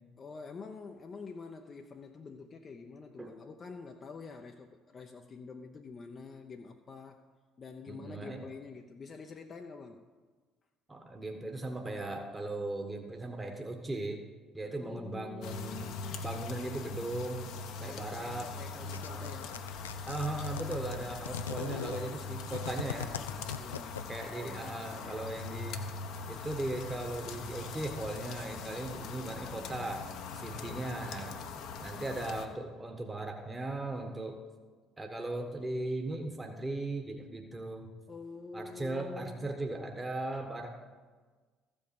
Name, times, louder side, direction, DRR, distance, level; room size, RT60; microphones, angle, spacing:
voice 1, 0.2-7.2 7.6-10.1 14.8-16.2 17.8-19.7 23.6-24.1 30.5-32.0 38.1-39.5, left 4 dB, 40° left, 4 dB, 0.7 m, -47 dB
voice 2, 7.9-8.4 10.9-14.2 14.5-17.4 17.8-18.5 18.8-19.3 20.0-23.1 24.1-25.9 26.3-30.1 30.3-31.4 31.8-34.4 35.0-37.9 38.5-40.7, right 2 dB, 20° right, 3 dB, 1.4 m, -38 dB
sound 1, 15.4-32.5, left 4 dB, 65° left, 0.9 m, -41 dB
sound 2, 18.9-24.4, left 8 dB, 85° left, 0.4 m, -40 dB
14.0 x 5.3 x 7.0 m, 1.4 s
hypercardioid pair, 55°, 0 cm